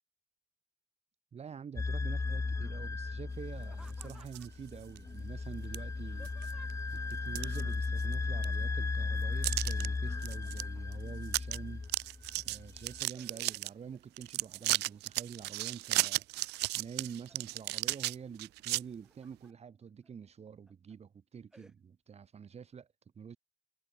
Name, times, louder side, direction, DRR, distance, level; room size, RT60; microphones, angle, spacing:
voice 1, 1.3-6.3 6.9-11.8 12.4-16.2 16.7-22.9 23.1-23.4, right 7 dB, 40° right, 6.5 m, -47 dB
sound 1, 1.8-13.0, left 3 dB, 15° left, 1.4 m, -36 dB
Laughter, 3.6-4.7 5.6-7.0 8.7-9.2 9.5-11.1 11.7-12.3 12.7-14.0 14.4-15.0 15.5-16.2 16.7-17.6 18.7-19.5 20.0-20.1 20.7-20.9 21.5-21.7, right 1 dB, 5° right, 5.4 m, -62 dB
sound 2, 3.9-4.5 4.9-5.0 5.7-5.8 6.2-6.7 7.1-8.1 8.4-8.5 9.4-9.9 10.2-10.6 10.9-11.0 11.3-11.6 11.8-13.7 14.2-18.8, right 20 dB, 80° right, 0.5 m, -34 dB
cardioid pair, 110°, 17 cm